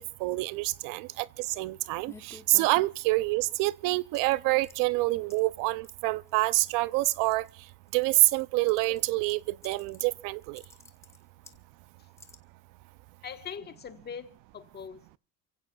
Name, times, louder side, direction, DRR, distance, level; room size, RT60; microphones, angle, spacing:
voice 1, 0.2-7.4 7.9-10.6, right 20 dB, 80° right, 0.7 m, -27 dB
sound 1, 2.0-3.4 4.1-4.8 5.3-5.6 5.8-5.9 6.3-6.7 7.3-8.4 8.7-10.1 10.4-11.6 12.2-12.4, left 2 dB, 10° left, 1.1 m, -51 dB
voice 2, 13.2-15.2, left 7 dB, 30° left, 1.4 m, -42 dB
29.0 x 16.5 x 2.4 m
cardioid pair, 145°, 32 cm